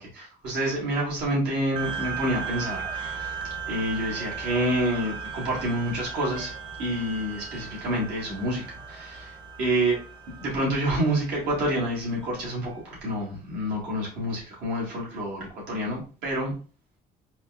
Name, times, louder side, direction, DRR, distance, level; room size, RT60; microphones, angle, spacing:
voice 1, 0.0-3.4 3.7-6.5 6.8-10.0 10.4-16.5, right 1 dB, 85° right, -5 dB, 1.9 m, -28 dB
sound 1, 1.8-12.6, right 6 dB, 30° right, 0.7 m, -37 dB
4.1 x 3.0 x 2.4 m, 0.37 s
cardioid pair, 110°, 17 cm